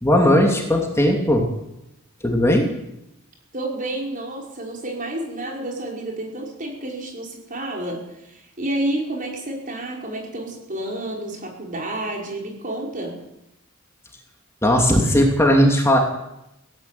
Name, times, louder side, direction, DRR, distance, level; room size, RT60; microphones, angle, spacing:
voice 1, 0.0-1.5 2.2-2.7 14.6-16.0, equal, 15° left, 1 dB, 2.8 m, -17 dB
voice 2, 3.5-13.2, right 1 dB, 40° right, 0 dB, 5.6 m, -30 dB
17.0 x 17.0 x 9.2 m, 0.87 s
head